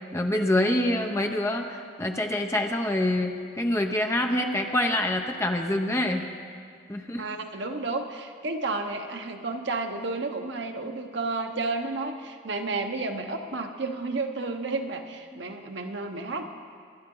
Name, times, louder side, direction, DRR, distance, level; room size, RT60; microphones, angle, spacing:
voice 1, 0.1-6.3 6.9-7.2 15.3-15.4, left 1 dB, 15° left, 3 dB, 0.8 m, -26 dB
voice 2, 7.2-16.4, right 3 dB, 65° right, 4 dB, 1.1 m, -31 dB
25.0 x 11.0 x 3.9 m, 2.1 s
head